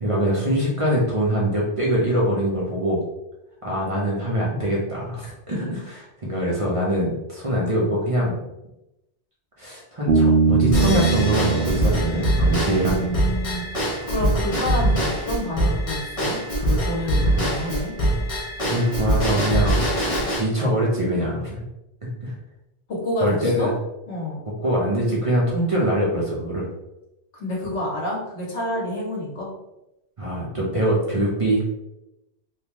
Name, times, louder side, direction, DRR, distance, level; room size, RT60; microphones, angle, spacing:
voice 1, 0.0-3.0 3.6-8.4 9.6-13.1 18.6-19.9 20.4-21.7 22.0-22.3 23.2-23.7 24.6-26.7 30.2-31.7, right 1 dB, 35° right, -5 dB, 0.7 m, -23 dB
Bass guitar, 10.1-13.6, right 4 dB, 70° right, 0.8 m, -22 dB
Drum kit / Drum / Bell, 10.7-20.4, right 1 dB, 35° left, 0.8 m, -23 dB
voice 2, 12.6-17.9 22.9-23.7 24.1-24.4 27.3-29.5, left 1 dB, 80° left, -4 dB, 1.5 m, -28 dB
3.6 x 2.4 x 3.0 m, 0.91 s
omnidirectional pair, 1.2 m